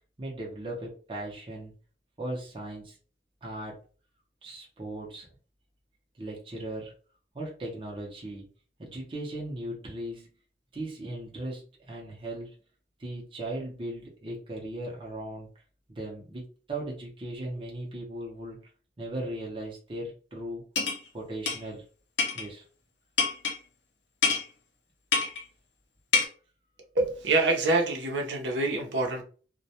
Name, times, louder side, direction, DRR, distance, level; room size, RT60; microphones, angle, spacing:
voice 1, 0.2-1.7 2.2-3.0 3.4-3.8 4.4-5.3 6.2-6.9 7.3-8.5 8.8-10.3 10.7-12.5 13.0-15.5 15.9-18.7 19.0-20.7 21.1-21.8 22.3-22.6, right 1 dB, 30° right, -2 dB, 0.6 m, -37 dB
sound 1, 20.8-21.0 21.5-21.6 22.2-22.5 23.2-23.6 24.2-24.4 25.1-25.4 26.1-26.3, left 5 dB, 80° left, 0.6 m, -25 dB
voice 2, 26.9-29.2, right 2 dB, 80° right, 1 dB, 0.7 m, -26 dB
2.2 x 2.1 x 2.7 m, 0.40 s
head